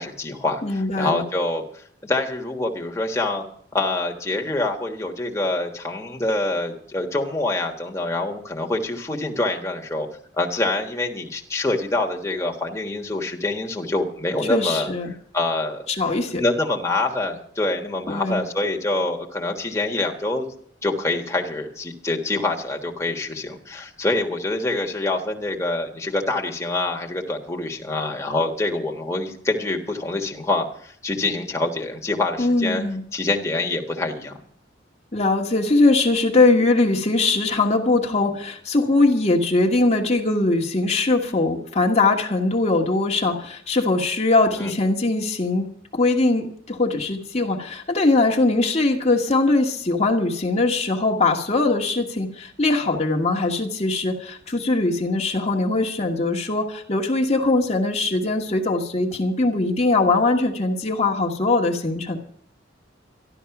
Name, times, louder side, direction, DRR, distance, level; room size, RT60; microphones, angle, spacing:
voice 1, 0.0-3.4 3.7-10.1 10.3-14.9 15.3-15.8 16.3-20.5 20.8-32.8 33.1-34.4 44.6-44.7, left 2 dB, 15° left, 1 dB, 1.4 m, -25 dB
voice 2, 0.6-1.2 14.4-15.1 15.9-16.4 18.1-18.4 32.4-33.0 35.1-45.7 45.9-62.2, left 2 dB, 35° left, 1 dB, 1.3 m, -21 dB
13.0 x 12.0 x 5.9 m, 0.62 s
head